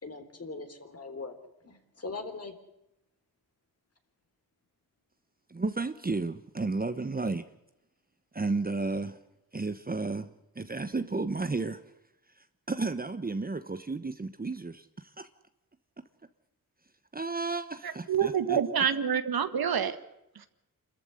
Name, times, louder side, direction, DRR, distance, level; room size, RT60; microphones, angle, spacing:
voice 1, 0.0-1.4 1.6-2.6, left 3 dB, 40° left, 7 dB, 3.8 m, -40 dB
voice 2, 5.5-7.4 8.3-9.2 9.5-11.8 12.4-15.3 17.1-18.6, right 3 dB, 25° right, 10 dB, 1.2 m, -33 dB
voice 3, 18.1-20.0, right 8 dB, 70° right, 10 dB, 1.8 m, -27 dB
27.0 x 14.0 x 9.8 m, 0.89 s
cardioid pair, 75°, 37 cm